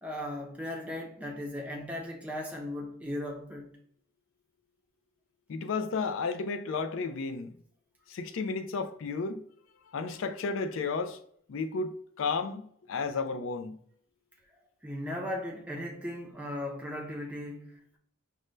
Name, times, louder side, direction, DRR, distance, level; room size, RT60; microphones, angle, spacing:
voice 1, 0.0-3.7 14.8-18.0, left 1 dB, 5° right, 0.6 m, -37 dB
voice 2, 5.5-7.5 8.1-9.4 9.9-11.2 11.5-13.8, left 4 dB, 55° left, 0.4 m, -33 dB
5.1 x 2.1 x 3.2 m
head